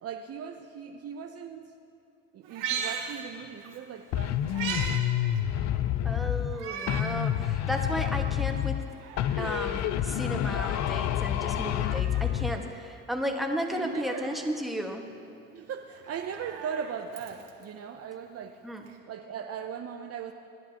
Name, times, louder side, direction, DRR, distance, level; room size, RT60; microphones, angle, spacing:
voice 1, 0.0-1.7 2.3-5.0 13.7-14.3 15.5-18.6 19.1-20.3, right 7 dB, 40° right, 5 dB, 0.8 m, -39 dB
Meow, 2.4-3.8 4.1-5.0 5.3-5.4 6.5-7.2 7.7-7.8 8.8-9.8 11.3-12.3 13.7-14.5 16.0-17.6 18.9-19.0, right 7 dB, 60° right, 1.9 m, -38 dB
sound 1, 4.1-6.6 6.9-8.9 9.2-12.6, left 11 dB, 50° left, 0.6 m, -28 dB
voice 2, 6.0-8.8 9.4-15.1 18.6-18.9, equal, ahead, 2 dB, 1.6 m, -34 dB
28.5 x 10.5 x 3.0 m, 2.8 s
hypercardioid pair, 65°, 36 cm